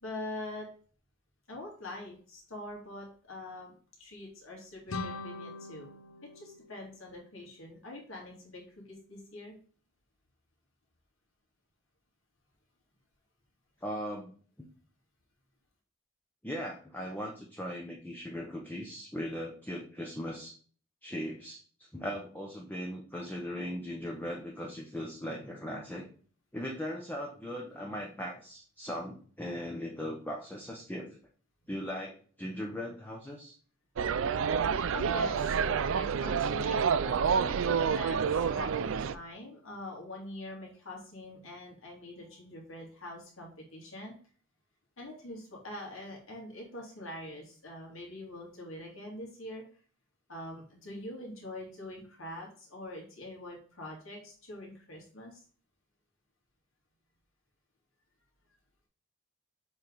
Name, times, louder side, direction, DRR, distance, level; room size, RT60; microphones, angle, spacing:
voice 1, 0.0-0.7 1.5-5.9 6.3-9.5 34.9-38.7 39.0-44.1 45.0-49.6 50.3-55.4, left 1 dB, 65° left, -1 dB, 2.4 m, -44 dB
sound 1, 4.9-7.6, left 3 dB, 80° left, 0.6 m, -42 dB
voice 2, 13.8-14.3 14.6-14.7 16.4-20.5 21.0-21.6 21.9-26.1 26.5-31.2 31.7-33.6, equal, 10° left, -1 dB, 0.8 m, -38 dB
sound 2, 34.0-39.1, right 6 dB, 65° right, 0.4 m, -28 dB
7.1 x 3.4 x 3.9 m, 0.42 s
head